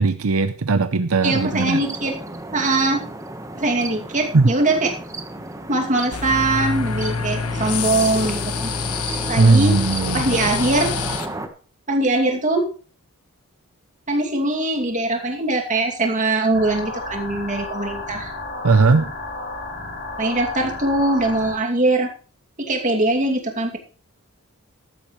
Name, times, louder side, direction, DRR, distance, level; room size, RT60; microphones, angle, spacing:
voice 1, 0.0-1.8 4.3-4.5 9.4-10.4 18.6-19.1, right 3 dB, 75° right, 11 dB, 0.7 m, -18 dB
voice 2, 1.2-2.1 2.5-3.0 3.5-4.9 5.7-8.7 9.3-9.8 10.1-10.9 11.9-12.7 14.1-18.3 20.2-22.1 22.7-23.8, right 2 dB, 35° right, 2 dB, 2.6 m, -21 dB
sound 1, 1.3-11.5, right 2 dB, 15° right, 1.2 m, -33 dB
sound 2, 6.1-11.3, left 5 dB, 85° left, 1.4 m, -26 dB
sound 3, 16.5-21.5, left 2 dB, 50° left, 3.4 m, -32 dB
14.0 x 12.0 x 3.2 m, 0.38 s
head